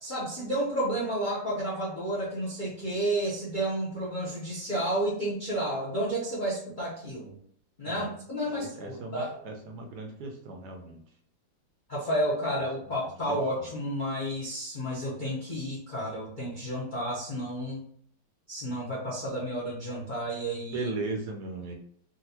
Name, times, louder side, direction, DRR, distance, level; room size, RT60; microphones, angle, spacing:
voice 1, 0.0-7.4 7.8-9.4 11.9-17.8 18.5-20.9, right 1 dB, 50° left, -6 dB, 0.5 m, -31 dB
voice 2, 8.5-11.0 13.3-13.7 20.7-21.7, right 3 dB, 70° right, 3 dB, 1.0 m, -37 dB
3.9 x 2.2 x 2.8 m, 0.63 s
omnidirectional pair, 2.0 m